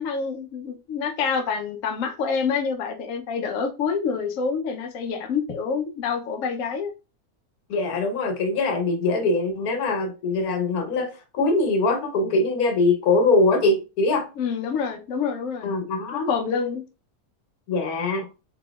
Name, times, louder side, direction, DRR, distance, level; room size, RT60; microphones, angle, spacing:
voice 1, 0.0-6.9 14.4-15.7 16.1-16.8, left 6 dB, 65° left, 1.0 m, -27 dB
voice 2, 7.7-14.3 15.6-16.3 17.7-18.2, left 2 dB, 80° left, 1.4 m, -22 dB
4.0 x 3.7 x 2.2 m
omnidirectional pair, 1.5 m